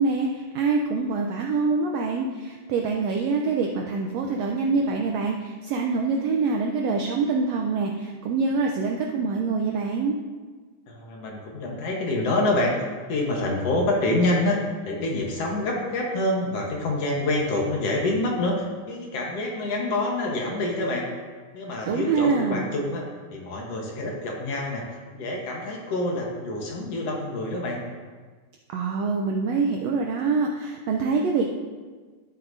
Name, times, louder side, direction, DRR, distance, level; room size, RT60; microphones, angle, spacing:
voice 1, 0.0-10.1 21.8-22.7 28.7-31.5, right 4 dB, 80° right, 1 dB, 1.5 m, -25 dB
voice 2, 10.9-12.7 13.1-14.6 14.9-21.1 21.5-23.0 23.3-27.8, left 2 dB, 60° left, -1 dB, 2.0 m, -26 dB
13.0 x 8.5 x 2.6 m, 1.4 s
omnidirectional pair, 3.6 m